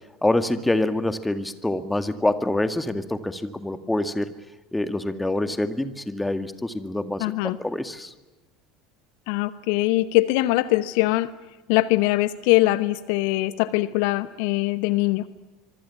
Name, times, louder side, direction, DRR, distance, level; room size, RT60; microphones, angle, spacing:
voice 1, 0.2-4.3 4.7-8.1, left 1 dB, 10° left, 10 dB, 2.1 m, -26 dB
voice 2, 7.2-7.6 9.3-11.3 11.7-15.3, left 18 dB, 65° left, 15 dB, 1.0 m, -22 dB
25.5 x 24.0 x 7.2 m, 1.1 s
figure-of-eight pair, 70°, 0 cm